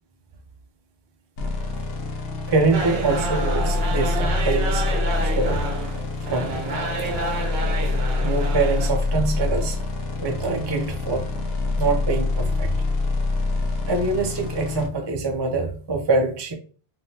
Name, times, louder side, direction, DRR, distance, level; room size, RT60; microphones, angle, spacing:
sound 1, 1.4-14.9, left 3 dB, 70° left, 0.8 m, -26 dB
voice 1, 2.5-5.6 6.3-6.6 7.0-7.2 8.2-9.8 10.2-11.3 11.8-12.7 13.9-16.5, right 3 dB, 40° right, 4 dB, 0.3 m, -24 dB
sound 2, 2.7-8.9, right 3 dB, 70° right, 0.9 m, -29 dB
3.5 x 2.6 x 2.7 m, 0.41 s
omnidirectional pair, 1.1 m